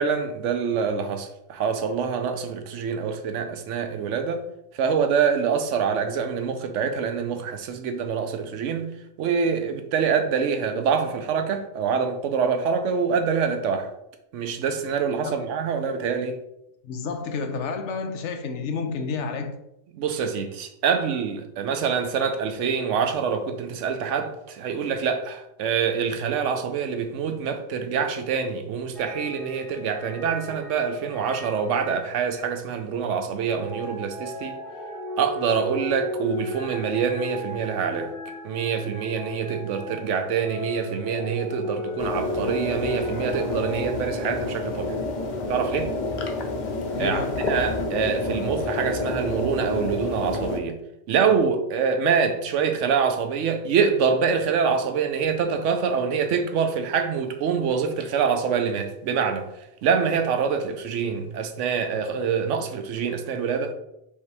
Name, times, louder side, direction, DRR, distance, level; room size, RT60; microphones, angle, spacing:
voice 1, 0.0-4.4 4.8-8.9 9.2-13.9 14.3-16.3 19.9-34.6 35.2-38.1 38.4-45.0 45.5-45.9 47.0-50.8 51.1-59.5 59.8-63.7, right 6 dB, 90° right, 0.9 m, -25 dB
voice 2, 16.8-19.6 46.9-47.5, left 4 dB, 80° left, 0.9 m, -30 dB
sound 1, 28.9-32.7 33.4-44.0, left 1 dB, ahead, 0.6 m, -36 dB
sound 2, 42.0-50.6, left 2 dB, 50° left, 0.6 m, -29 dB
5.2 x 2.7 x 3.3 m
omnidirectional pair, 1.2 m